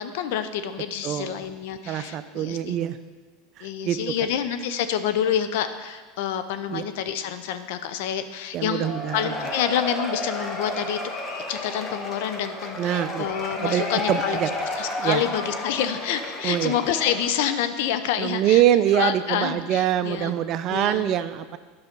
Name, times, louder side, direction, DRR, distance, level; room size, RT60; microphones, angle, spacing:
voice 1, 0.0-2.8 3.6-11.0 11.5-14.4 14.7-18.6 18.9-20.3 20.7-21.1, left 9 dB, 70° left, 10 dB, 0.7 m, -28 dB
voice 2, 1.9-3.0 3.6-4.0 6.7-6.8 8.5-9.3 12.8-13.3 13.6-14.5 15.0-15.2 16.4-16.7 18.2-21.6, right 11 dB, 50° right, 12 dB, 0.5 m, -24 dB
Cheering / Applause / Crowd, 8.8-17.7, left 2 dB, 25° left, 1.6 m, -32 dB
9.7 x 5.7 x 5.3 m, 1.4 s
supercardioid pair, 105°, 0 cm